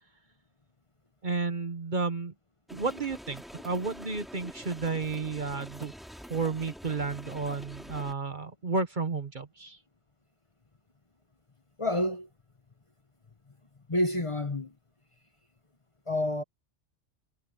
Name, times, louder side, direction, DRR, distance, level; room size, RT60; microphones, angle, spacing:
voice 1, 1.2-2.3 2.7-5.9 6.3-9.8, right 4 dB, 45° right, 1.2 m, -32 dB
sound 1, 2.7-8.1, equal, ahead, 4.0 m, -46 dB
voice 2, 11.8-12.3 13.9-14.7 16.1-16.4, left 1 dB, 25° left, 1.3 m, -28 dB
omnidirectional pair, 1.2 m